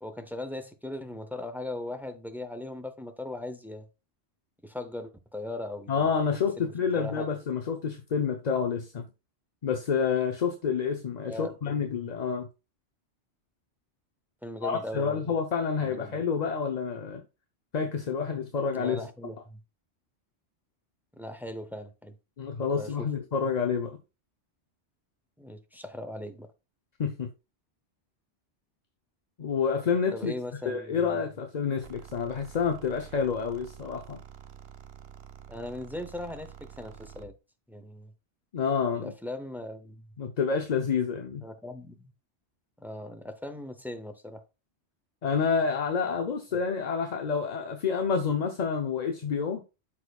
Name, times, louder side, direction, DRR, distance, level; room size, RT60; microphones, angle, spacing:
voice 1, 0.0-3.9 4.6-6.1 6.6-7.3 11.3-11.9 14.4-15.3 15.8-16.2 18.7-19.6 21.1-22.2 22.7-23.1 25.4-26.5 30.1-31.2 35.5-37.3 37.7-38.1 38.9-40.1 41.4-42.1 42.8-44.4 46.5-46.6, left 1 dB, ahead, 0.5 m, -39 dB
voice 2, 5.9-9.1 9.6-12.5 14.6-17.2 17.7-19.0 22.4-24.0 27.0-27.3 29.4-30.3 30.7-34.2 38.5-39.1 40.2-41.4 45.2-49.6, left 6 dB, 45° left, 0.7 m, -28 dB
sound 1, 31.8-37.4, right 8 dB, 65° right, 0.9 m, -48 dB
12.5 x 4.4 x 2.3 m
omnidirectional pair, 1.2 m